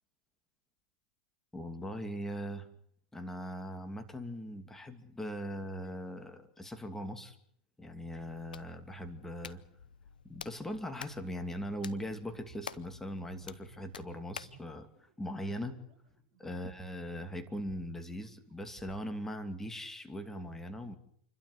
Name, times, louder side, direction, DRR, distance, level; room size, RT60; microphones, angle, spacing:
voice 1, 1.5-2.7 3.1-7.3 7.8-9.6 10.2-15.8 16.4-21.0, equal, 10° left, 7 dB, 2.7 m, -40 dB
Hands, 8.1-14.6, left 7 dB, 85° left, 0.9 m, -50 dB
sound 1, 11.8-17.1 17.4-19.0, right 13 dB, 50° right, 6.6 m, -59 dB
28.0 x 12.5 x 9.6 m, 0.66 s
hypercardioid pair, 105°, 5 cm